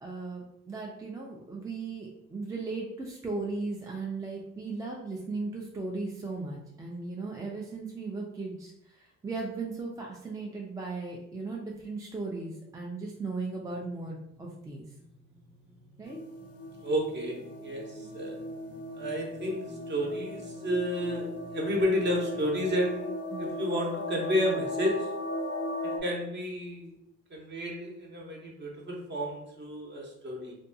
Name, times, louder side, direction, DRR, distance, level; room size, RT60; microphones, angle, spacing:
voice 1, 0.0-8.7 9.2-14.8 16.0-16.2 23.3-23.4, right 3 dB, 10° right, -2 dB, 0.4 m, -37 dB
sound 1, 13.8-22.5, equal, 70° right, 0.9 m, -53 dB
sound 2, 16.1-26.0, left 1 dB, 55° left, 0.4 m, -37 dB
voice 2, 16.8-18.4 18.9-25.1 26.0-26.9 27.3-30.6, equal, 35° right, -1 dB, 0.8 m, -31 dB
2.5 x 2.2 x 2.6 m, 0.81 s
cardioid pair, 90°, 30 cm